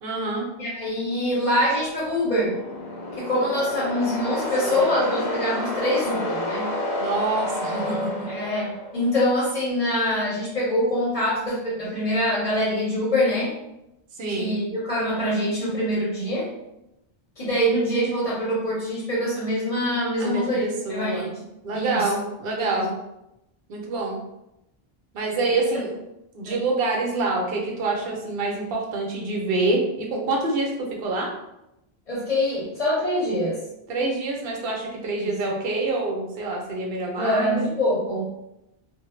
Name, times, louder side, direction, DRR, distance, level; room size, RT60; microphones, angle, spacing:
voice 1, 0.0-0.5 4.6-5.0 7.0-8.3 14.2-14.5 20.2-21.3 21.6-22.9 23.7-24.2 25.1-25.9 26.3-30.7 31.0-31.3 33.9-37.6, right 2 dB, 70° right, 0 dB, 0.8 m, -26 dB
voice 2, 0.6-2.6 3.2-6.7 8.3-13.5 14.3-16.5 17.4-21.3 21.7-22.1 22.7-22.8 25.5-25.8 26.4-26.6 32.1-33.6 35.1-35.3 37.2-38.3, equal, 40° left, -8 dB, 0.7 m, -24 dB
sound 1, 2.0-9.0, left 2 dB, 90° left, 0.9 m, -30 dB
2.0 x 2.0 x 3.0 m, 0.88 s
omnidirectional pair, 1.1 m